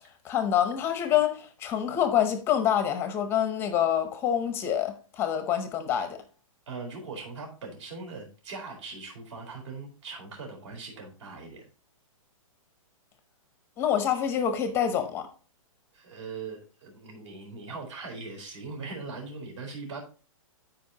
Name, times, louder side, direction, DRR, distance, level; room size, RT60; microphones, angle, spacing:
voice 1, 0.2-6.2 13.8-15.3, left 9 dB, 15° left, 0.7 m, -26 dB
voice 2, 6.7-11.6 15.9-20.0, right 4 dB, 60° right, 4.1 m, -40 dB
13.0 x 5.0 x 2.8 m
hypercardioid pair, 165°, 18 cm